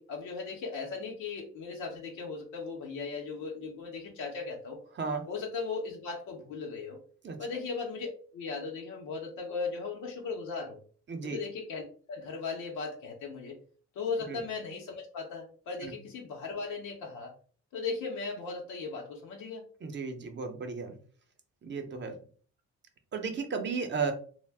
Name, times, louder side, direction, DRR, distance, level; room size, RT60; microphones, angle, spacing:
voice 1, 0.0-4.8 5.3-7.0 7.4-10.8 11.2-11.8 12.1-13.6 13.9-17.3 17.7-19.6, left 4 dB, 90° left, 0 dB, 0.7 m, -37 dB
voice 2, 5.0-5.3 7.2-7.4 11.1-11.4 14.3-14.4 15.8-15.9 19.8-20.9 21.6-22.1 23.1-24.1, right 5 dB, 40° right, 6 dB, 0.6 m, -34 dB
2.5 x 2.1 x 3.3 m, 0.43 s
cardioid pair, 90°, 30 cm